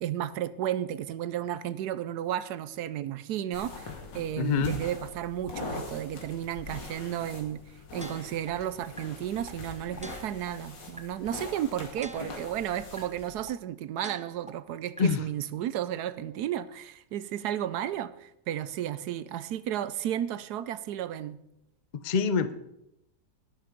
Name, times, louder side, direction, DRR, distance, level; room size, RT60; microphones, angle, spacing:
voice 1, 0.0-7.6 7.9-21.4, right 11 dB, 70° right, 1.1 m, -33 dB
sound 1, 3.5-13.4, left 3 dB, 90° left, 2.8 m, -43 dB
voice 2, 4.4-4.8 15.0-15.2 21.9-22.5, left 5 dB, 70° left, 0.4 m, -25 dB
sound 2, 8.0-8.5 9.0-9.1 9.5-9.6 10.0-10.5 11.0-11.1 11.5-11.6 12.0-12.5 13.0-13.1 13.5-13.6 14.0-14.5 15.0-15.1, right 2 dB, 10° right, 0.4 m, -44 dB
11.5 x 11.5 x 5.1 m
omnidirectional pair, 1.9 m